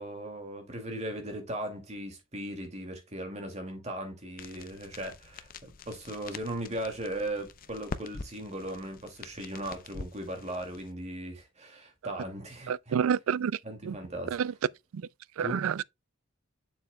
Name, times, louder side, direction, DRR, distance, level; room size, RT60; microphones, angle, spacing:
voice 1, 0.0-5.5 5.9-12.9 13.6-14.4 15.4-15.6, right 1 dB, 30° right, 2.3 m, -38 dB
sound 1, 4.4-10.9, left 4 dB, 45° left, 0.6 m, -45 dB
voice 2, 12.7-13.5 13.8-14.0 14.3-14.5 14.9-15.0 15.4-15.8, right 7 dB, 85° right, 0.4 m, -28 dB
7.4 x 7.0 x 2.2 m
head